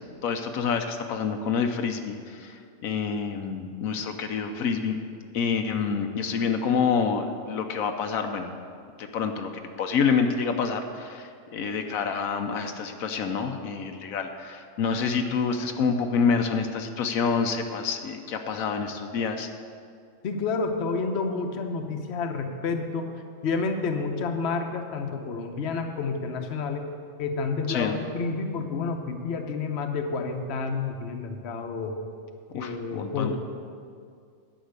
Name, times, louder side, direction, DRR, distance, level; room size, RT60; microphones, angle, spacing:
voice 1, 0.0-5.0 5.3-8.5 9.0-9.5 9.8-19.5 27.7-28.0 32.5-33.3, left 5 dB, 85° left, 5 dB, 1.2 m, -27 dB
voice 2, 20.2-23.1 23.4-26.9 27.2-32.0 32.5-33.4, left 4 dB, 55° left, 5 dB, 1.1 m, -29 dB
10.0 x 6.0 x 8.1 m, 2.2 s
omnidirectional pair, 1.4 m